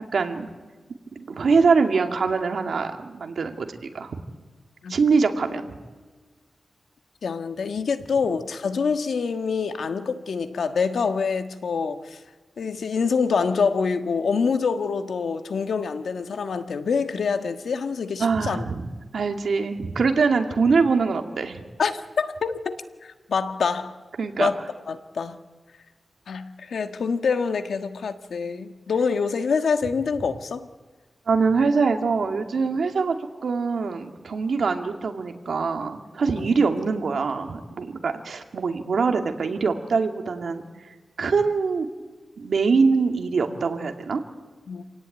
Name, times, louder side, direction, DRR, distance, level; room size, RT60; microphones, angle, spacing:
voice 1, 0.1-0.5 1.2-3.7 3.9-4.2 4.9-5.6 18.2-18.8 19.1-21.6 24.2-24.5 31.3-33.2 33.4-40.6 41.2-41.9 42.4-44.2, right 4 dB, 75° right, 5 dB, 2.4 m, -23 dB
voice 2, 7.2-12.2 12.6-18.6 21.8-22.8 23.0-23.9 24.4-24.5 24.9-25.4 26.3-30.7 36.4-36.5 44.7-44.8, left 5 dB, 85° left, 8 dB, 1.5 m, -26 dB
28.0 x 18.0 x 9.3 m, 1.4 s
wide cardioid pair, 120°, 0 cm